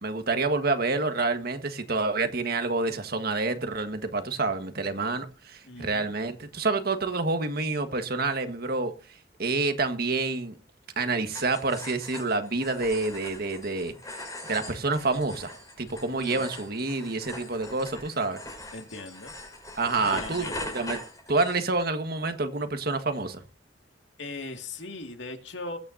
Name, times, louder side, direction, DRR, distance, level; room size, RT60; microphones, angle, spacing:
voice 1, 0.0-8.9 9.4-10.6 11.0-13.9 14.5-15.5 15.8-18.4 19.7-21.0 21.3-23.4, right 3 dB, 55° right, 1.6 m, -28 dB
voice 2, 5.6-6.1 16.1-16.5 18.7-19.3 19.9-20.7 24.2-25.8, left 3 dB, 80° left, 2.2 m, -39 dB
sound 1, 11.3-21.9, left 2 dB, 20° left, 4.8 m, -41 dB
21.5 x 8.9 x 2.8 m
head